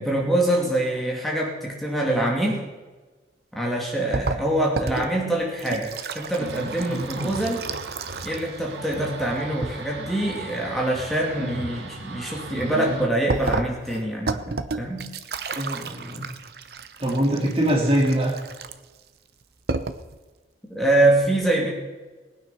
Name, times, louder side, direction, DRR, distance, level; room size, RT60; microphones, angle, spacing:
voice 1, 0.0-2.6 3.5-7.7 8.2-15.1 20.7-21.7, right 1 dB, ahead, -3 dB, 2.6 m, -24 dB
sound 1, 4.1-8.6 8.8-9.8 13.3-19.0 19.4-19.5 19.7-20.2, right 3 dB, 60° right, 0.8 m, -31 dB
sound 2, 6.4-13.1, right 2 dB, 85° right, 1.4 m, -36 dB
voice 2, 15.5-16.3 17.0-18.3, right 1 dB, 30° right, 0 dB, 2.3 m, -23 dB
19.5 x 9.3 x 6.0 m, 1.3 s
head